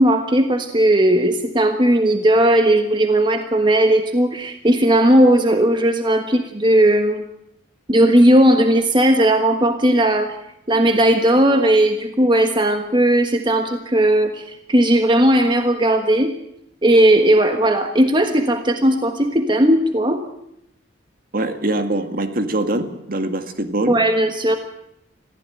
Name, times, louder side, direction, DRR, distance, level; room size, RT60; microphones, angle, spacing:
voice 1, 0.0-7.2 7.9-10.4 10.7-16.3 16.8-20.2 23.9-24.6, right 1 dB, 25° right, 6 dB, 1.4 m, -16 dB
voice 2, 21.3-24.0, right 1 dB, 50° right, 7 dB, 2.0 m, -23 dB
22.0 x 15.5 x 9.0 m, 0.80 s
head